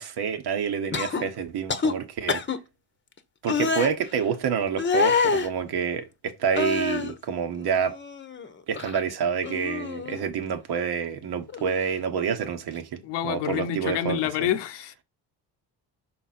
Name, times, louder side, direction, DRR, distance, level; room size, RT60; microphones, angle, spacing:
voice 1, 0.0-2.4 3.4-8.0 8.7-14.5, right 7 dB, 70° right, 1.2 m, -28 dB
sound 1, 0.9-1.2 1.7-1.9 2.3-2.6 3.5-3.9 4.8-5.5 6.5-7.1 7.6-8.5 8.7-9.0 9.4-10.2 11.5-11.7, left 4 dB, 30° left, 0.9 m, -26 dB
voice 2, 13.0-15.0, left 10 dB, 90° left, 0.8 m, -28 dB
5.7 x 4.4 x 4.2 m
cardioid pair, 100°, 41 cm